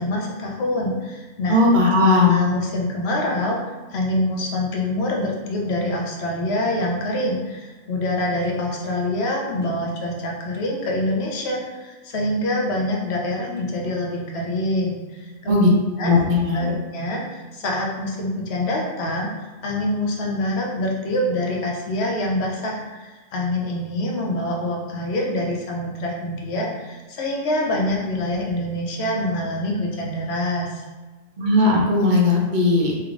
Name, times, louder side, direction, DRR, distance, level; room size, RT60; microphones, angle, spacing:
voice 1, 0.0-1.6 2.0-3.6 3.9-15.5 16.0-16.1 16.5-19.3 19.6-30.8, left 1 dB, 65° left, -1 dB, 0.9 m, -25 dB
voice 2, 1.5-2.4 15.5-15.7 16.0-16.7 31.4-32.9, left 2 dB, 50° right, -2 dB, 0.7 m, -17 dB
3.3 x 3.2 x 2.4 m, 1.2 s
omnidirectional pair, 1.3 m